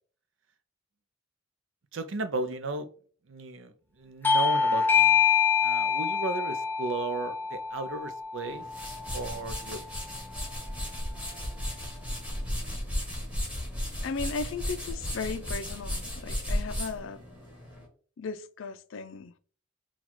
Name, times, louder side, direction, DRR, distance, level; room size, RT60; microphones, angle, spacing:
voice 1, 1.9-2.9 3.3-5.2 5.6-8.7 9.1-9.8, right 3 dB, 65° right, 0.6 m, -35 dB
Bell / Doorbell, 4.2-9.3, left 6 dB, 10° left, 0.4 m, -26 dB
sound 1, 8.5-17.9, equal, 5° right, 1.3 m, -35 dB
voice 2, 14.0-17.2 18.2-19.3, left 4 dB, 75° left, 0.4 m, -36 dB
4.0 x 2.3 x 4.4 m
head